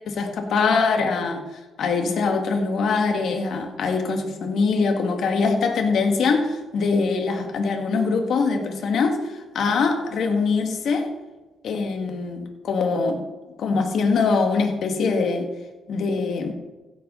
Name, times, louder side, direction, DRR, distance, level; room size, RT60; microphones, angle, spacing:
voice 1, 0.1-1.4 1.8-11.1 11.6-13.2 13.6-15.5 15.9-16.5, left 4 dB, 65° left, 3 dB, 2.1 m, -23 dB
15.5 x 8.1 x 4.1 m, 1.2 s
cardioid pair, 90°, 0 cm